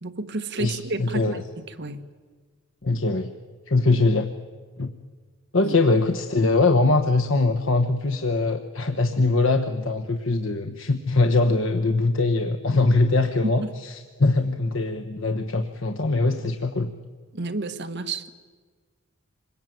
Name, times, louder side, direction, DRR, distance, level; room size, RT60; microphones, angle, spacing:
voice 1, 0.0-2.0 5.6-5.7 13.4-13.7 17.3-18.3, right 2 dB, 55° right, 8 dB, 1.5 m, -31 dB
voice 2, 0.6-1.4 2.8-3.3 3.7-4.3 4.8-4.9 5.5-13.9 14.2-16.9, left 3 dB, 65° left, 7 dB, 1.1 m, -22 dB
26.0 x 21.0 x 9.2 m, 1.5 s
head